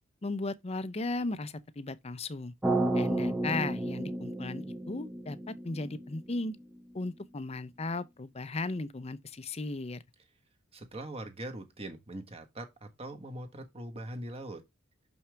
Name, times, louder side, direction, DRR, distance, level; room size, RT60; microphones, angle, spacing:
voice 1, 0.2-2.5 2.9-6.6 6.9-10.0, left 3 dB, 30° left, 0.6 m, -36 dB
sound 1, 2.6-6.8, right 2 dB, 5° right, 0.7 m, -32 dB
voice 2, 10.7-14.6, right 1 dB, 30° right, 1.4 m, -42 dB
6.3 x 5.7 x 3.4 m
head